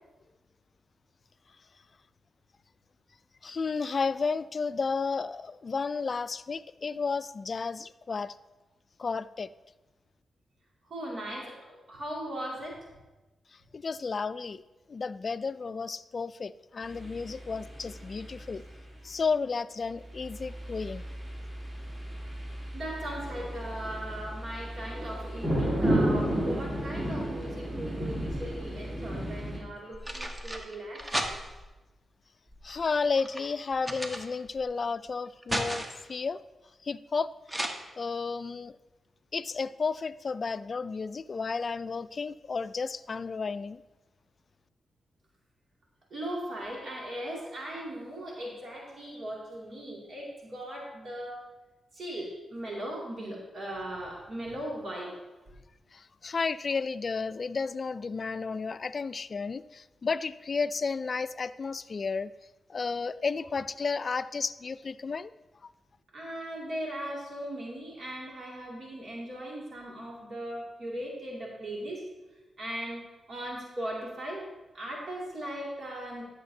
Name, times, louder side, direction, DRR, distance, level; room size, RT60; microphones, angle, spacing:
voice 1, 3.4-8.4 9.0-9.5 13.5-14.6 14.9-18.6 19.0-21.0 32.6-35.8 36.1-36.4 36.8-37.6 38.0-38.8 39.3-43.8 55.9-62.3 62.7-65.3 65.6-65.7, left 4 dB, 50° left, 15 dB, 0.3 m, -32 dB
voice 2, 10.8-12.9 22.7-31.1 46.1-51.4 51.9-55.1 66.1-72.1 72.6-73.0 73.3-74.5 74.7-76.2, right 1 dB, 65° right, -3 dB, 2.3 m, -38 dB
sound 1, 16.8-18.7 20.1-29.6, right 1 dB, 45° right, 2.9 m, -33 dB
sound 2, 28.0-28.8 29.6-31.8 32.5-34.7 35.1-36.1 37.5-37.7, right 1 dB, 20° right, 1.0 m, -36 dB
12.0 x 6.6 x 2.7 m, 1.1 s
cardioid pair, 55°, 0 cm